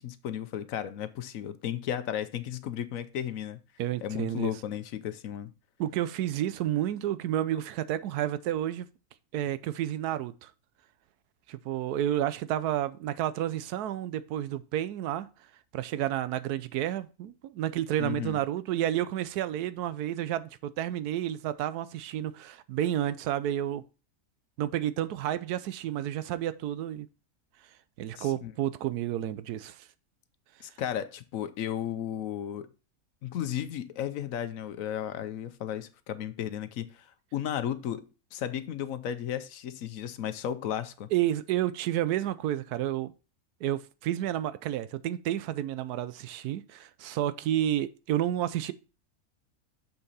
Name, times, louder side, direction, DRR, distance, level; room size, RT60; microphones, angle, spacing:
voice 1, 0.0-3.6 4.0-5.5 18.0-18.4 28.2-28.5 30.6-32.7 33.2-38.0 38.3-41.1, left 10 dB, 65° left, 1.0 m, -34 dB
voice 2, 3.8-4.5 5.8-8.9 9.3-10.5 11.5-15.3 15.7-23.8 24.6-27.1 28.0-29.8 41.1-43.1 43.6-48.7, right 12 dB, 90° right, 1.2 m, -30 dB
6.8 x 5.9 x 4.0 m
omnidirectional pair, 1.6 m